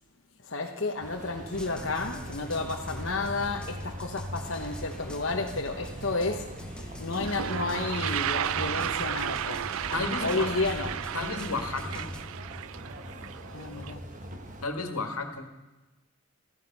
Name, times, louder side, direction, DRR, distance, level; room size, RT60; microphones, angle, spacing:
voice 1, 0.4-9.7 10.2-10.9 13.5-14.0, left 3 dB, 55° left, 2 dB, 1.0 m, -32 dB
sound 1, 1.0-14.7, equal, 35° right, 1.3 m, -41 dB
sound 2, 1.5-12.2, left 1 dB, 5° left, 1.0 m, -45 dB
Toilet flush, 6.8-6.9 7.1-13.9, right 10 dB, 70° right, 0.4 m, -33 dB
voice 2, 9.9-10.6 11.1-12.1 14.6-15.5, left 3 dB, 85° left, 6 dB, 2.0 m, -33 dB
15.5 x 14.5 x 5.4 m, 1.1 s
head